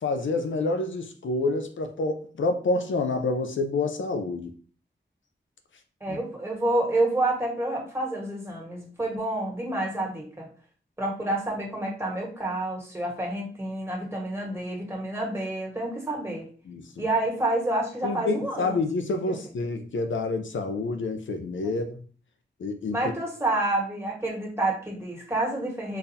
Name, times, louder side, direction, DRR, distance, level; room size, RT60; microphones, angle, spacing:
voice 1, 0.0-4.5 6.1-6.2 16.6-17.0 18.0-22.0 22.6-23.0, left 3 dB, 80° left, 6 dB, 0.5 m, -28 dB
voice 2, 6.0-10.5 11.0-16.5 17.0-18.8 22.9-26.0, right 2 dB, 15° right, -2 dB, 1.5 m, -28 dB
3.9 x 2.4 x 2.8 m, 0.41 s
wide cardioid pair, 60°, 19 cm